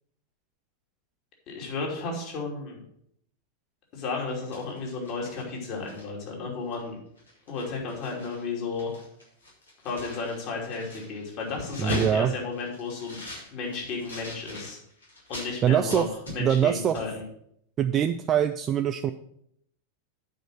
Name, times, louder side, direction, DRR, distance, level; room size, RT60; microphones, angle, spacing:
voice 1, 1.5-2.8 3.9-7.0 7.5-8.9 9.8-13.2 13.5-14.8 15.3-17.2, left 4 dB, 40° left, -1 dB, 2.9 m, -33 dB
sound 1, 4.3-6.3 6.7-6.9 7.2-8.4 8.7-15.5 15.9-16.7 16.9-17.1, left 1 dB, 75° left, 3.1 m, -40 dB
voice 2, 11.8-12.3 15.6-16.1 16.4-17.0 17.8-19.1, right 9 dB, 25° right, 7 dB, 0.4 m, -23 dB
8.8 x 5.2 x 6.3 m, 0.71 s
figure-of-eight pair, 90°, 0 cm